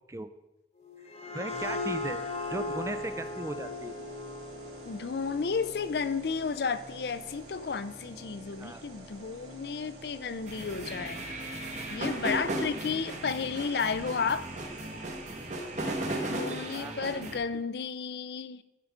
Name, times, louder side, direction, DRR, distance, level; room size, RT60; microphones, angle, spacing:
sound 1, 0.8-6.3, left 2 dB, 40° left, 0.9 m, -38 dB
voice 1, 1.3-2.2 2.5-3.9 8.6-8.8 16.7-17.2, right 2 dB, 15° right, 11 dB, 0.4 m, -37 dB
sound 2, 1.5-16.2, right 1 dB, 75° right, 3.6 m, -49 dB
voice 2, 4.8-11.2 11.9-14.5 16.1-18.6, left 5 dB, 60° left, 14 dB, 0.4 m, -32 dB
sound 3, 10.5-17.4, right 1 dB, 40° right, 1.2 m, -36 dB
12.0 x 4.6 x 5.0 m, 0.99 s
head